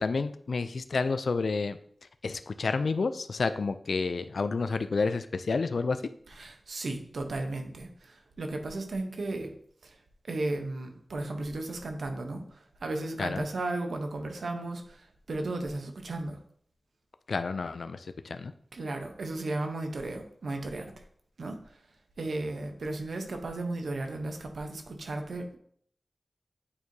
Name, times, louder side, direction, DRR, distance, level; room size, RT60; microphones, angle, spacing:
voice 1, 0.0-1.8 2.2-6.0 13.2-13.5 17.3-18.5, left 4 dB, 80° left, 10 dB, 0.3 m, -30 dB
voice 2, 6.3-9.5 9.8-10.0 10.2-16.4 18.7-20.9 21.4-21.8 22.2-25.6, right 2 dB, 90° right, 5 dB, 0.8 m, -35 dB
8.6 x 4.6 x 2.7 m, 0.63 s
wide cardioid pair, 80°, 0 cm